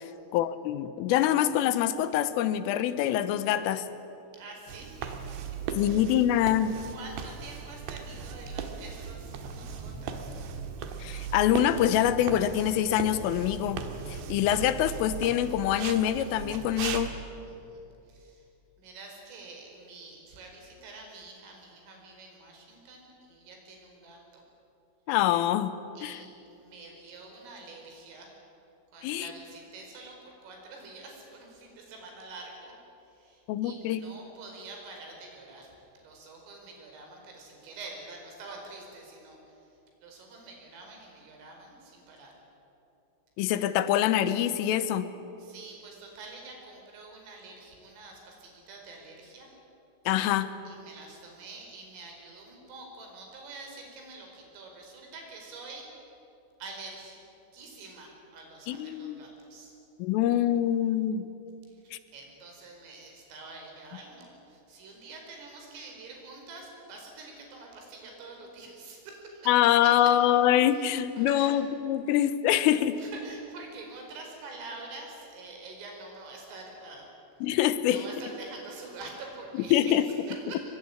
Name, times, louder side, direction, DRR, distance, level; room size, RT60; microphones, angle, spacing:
voice 1, 0.3-3.9 5.8-6.8 11.0-13.8 14.1-17.1 25.1-26.2 29.0-29.3 33.5-34.0 43.4-45.1 50.1-50.5 58.7-59.2 60.0-61.3 61.9-62.0 69.5-73.0 77.4-78.0 79.7-80.0, left 11 dB, 90° left, 13 dB, 3.6 m, -25 dB
voice 2, 4.3-5.2 5.8-6.0 6.3-6.5 6.9-10.4 17.4-18.5 18.8-24.4 26.0-28.3 28.9-32.8 33.0-39.7 40.0-42.3 45.4-49.5 50.7-56.0 56.6-57.2 57.5-59.7 61.7-69.5 69.8-69.9 70.7-70.9 71.2-71.6 73.0-77.1 77.9-80.6, right 3 dB, 85° right, 1 dB, 7.5 m, -46 dB
sound 1, 4.7-17.1, right 6 dB, 65° right, 3.5 m, -38 dB
24.0 x 23.0 x 9.9 m, 2.8 s
omnidirectional pair, 5.7 m